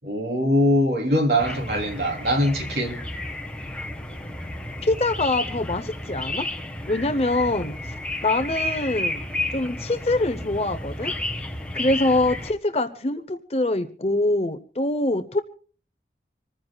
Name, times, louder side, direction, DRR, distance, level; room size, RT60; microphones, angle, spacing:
voice 1, 0.0-3.0, equal, 70° right, 3.3 m, -22 dB
sound 1, 1.4-12.5, left 1 dB, 5° left, 1.4 m, -32 dB
voice 2, 4.8-6.5 6.9-7.9 8.2-9.2 9.5-11.1 11.7-15.4, left 2 dB, 35° left, 0.8 m, -24 dB
26.0 x 14.5 x 2.3 m
head